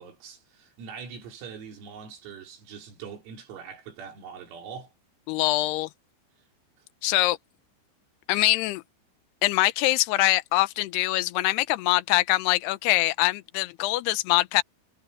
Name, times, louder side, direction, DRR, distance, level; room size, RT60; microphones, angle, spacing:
voice 1, 0.0-4.9 6.8-6.9, right 6 dB, 90° right, 7.0 m, -42 dB
voice 2, 5.3-5.9 7.0-7.4 8.3-8.8 9.4-14.6, left 18 dB, 90° left, 2.3 m, -23 dB
omnidirectional pair, 5.9 m